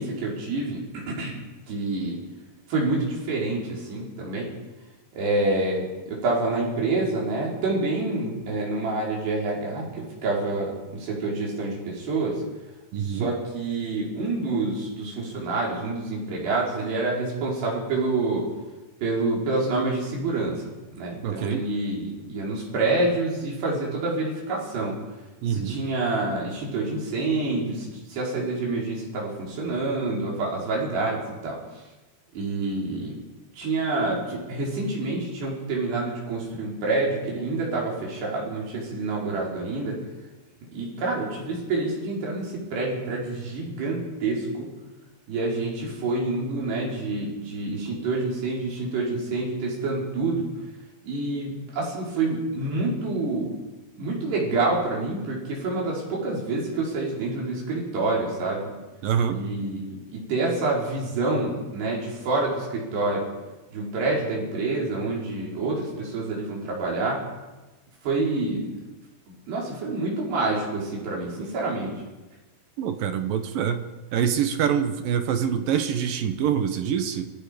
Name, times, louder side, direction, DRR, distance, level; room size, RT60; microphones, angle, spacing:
voice 1, 0.0-1.4 1.7-2.2 2.7-4.5 5.2-12.4 13.0-18.5 19.0-20.6 21.0-25.0 25.5-31.6 32.3-33.2 33.6-40.0 40.7-44.7 45.3-50.4 51.0-53.6 54.0-58.7 59.3-63.3 63.7-67.2 68.0-68.7 69.3-71.9, right 2 dB, 90° right, -3 dB, 6.6 m, -27 dB
voice 2, 12.9-13.3 21.2-21.7 25.4-25.8 59.0-59.4 72.8-73.8 74.1-77.3, right 8 dB, 70° right, 8 dB, 2.7 m, -25 dB
27.5 x 18.5 x 5.2 m, 1.1 s
omnidirectional pair, 4.6 m